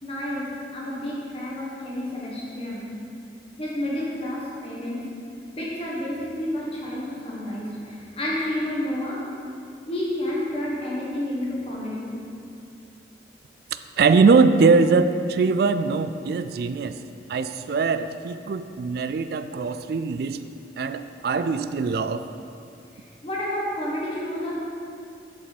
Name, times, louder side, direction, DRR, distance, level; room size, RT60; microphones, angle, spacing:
voice 1, 0.0-2.9 3.6-5.1 5.5-9.2 9.9-12.1 23.2-24.6, left 1 dB, 30° left, -5 dB, 1.5 m, -30 dB
voice 2, 14.0-17.0 17.3-20.4 20.8-22.2, right 4 dB, 60° right, 10 dB, 0.3 m, -21 dB
8.3 x 7.7 x 4.2 m, 2.5 s
head